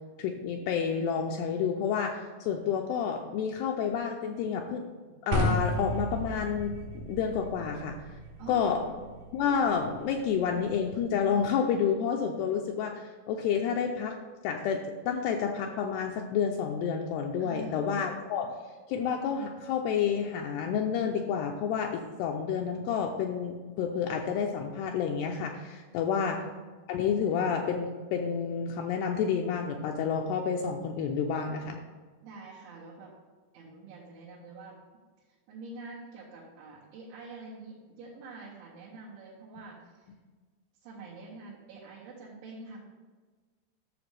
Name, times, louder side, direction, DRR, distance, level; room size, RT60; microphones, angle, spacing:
voice 1, 0.2-4.8 5.2-6.8 7.1-8.0 8.5-8.8 9.3-14.2 14.4-18.5 18.9-26.4 26.9-31.8, left 7 dB, 85° left, 2 dB, 2.4 m, -29 dB
sound 1, 5.3-11.4, equal, 70° right, 1.8 m, -35 dB
voice 2, 8.4-9.0 17.4-18.2 32.2-33.1 33.5-34.8 35.5-40.1 40.8-42.9, right 3 dB, 85° right, -9 dB, 3.9 m, -46 dB
12.0 x 6.7 x 3.3 m, 1.4 s
omnidirectional pair, 5.2 m